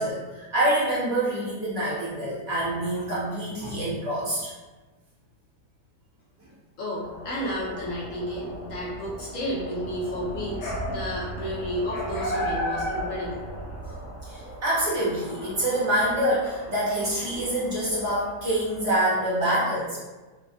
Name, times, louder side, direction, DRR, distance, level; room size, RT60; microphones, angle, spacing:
voice 1, 0.0-4.5 13.8-13.9 14.2-20.0, right 1 dB, 60° right, -8 dB, 0.9 m, -26 dB
voice 2, 6.8-13.4, equal, 65° left, -5 dB, 0.9 m, -32 dB
sound 1, 7.0-18.9, equal, 85° left, 1.4 m, -36 dB
3.3 x 2.1 x 2.4 m, 1.2 s
omnidirectional pair, 1.7 m